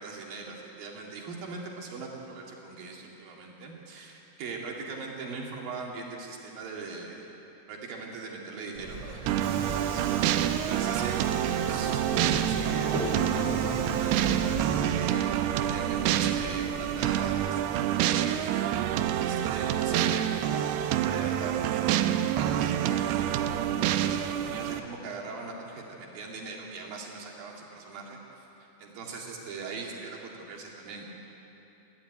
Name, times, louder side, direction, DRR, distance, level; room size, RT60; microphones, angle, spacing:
voice 1, 0.0-7.3 7.7-15.3 15.6-28.5 28.8-31.0, right 4 dB, 65° right, -1 dB, 3.9 m, -41 dB
Subway metro underground, 8.7-17.5, right 2 dB, 45° right, 3.4 m, -36 dB
sound 1, 9.3-24.8, right 11 dB, 80° right, 2.6 m, -27 dB
21.0 x 14.5 x 9.4 m, 3.0 s
omnidirectional pair, 4.6 m